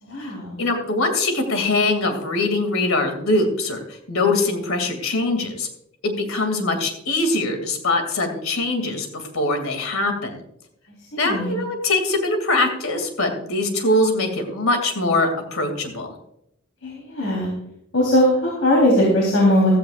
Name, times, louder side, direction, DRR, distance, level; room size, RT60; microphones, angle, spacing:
voice 1, 0.0-0.6 11.1-11.6 16.8-17.5 17.9-19.7, left 1 dB, 75° left, -3 dB, 3.5 m, -19 dB
voice 2, 0.6-5.7 6.0-10.4 11.2-16.1, left 2 dB, 90° left, 6 dB, 2.5 m, -22 dB
15.5 x 13.5 x 2.5 m, 0.77 s
head